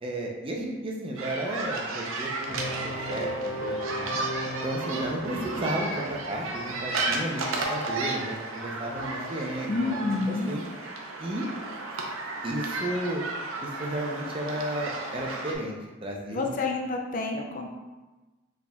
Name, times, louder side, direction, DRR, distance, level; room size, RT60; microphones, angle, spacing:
voice 1, 0.0-4.2 4.6-7.4 7.7-10.6 11.2-11.5 12.4-13.2 13.6-15.8 16.0-16.6, right 1 dB, 25° right, -1 dB, 0.5 m, -33 dB
sound 1, 1.2-15.6, right 2 dB, 80° right, 0.6 m, -33 dB
sound 2, 2.5-8.1, equal, 5° right, 0.9 m, -36 dB
voice 2, 9.7-10.5 16.3-17.7, left 3 dB, 40° left, 2 dB, 0.3 m, -29 dB
4.8 x 3.5 x 2.2 m, 1.2 s
head